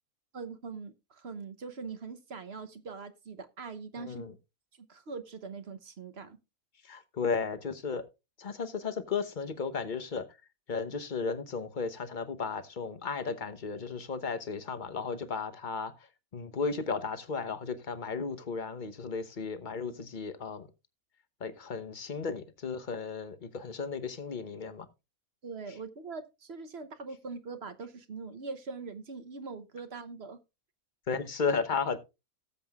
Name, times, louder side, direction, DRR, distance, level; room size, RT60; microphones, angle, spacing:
voice 1, 0.3-4.2 4.9-6.4 25.4-30.4, right 4 dB, 50° right, 1.1 m, -42 dB
voice 2, 4.0-4.3 6.8-8.0 8.4-10.3 10.7-15.9 16.3-20.7 21.4-24.9 31.1-32.0, left 5 dB, 35° left, 1.0 m, -34 dB
18.0 x 7.7 x 2.4 m
omnidirectional pair, 1.5 m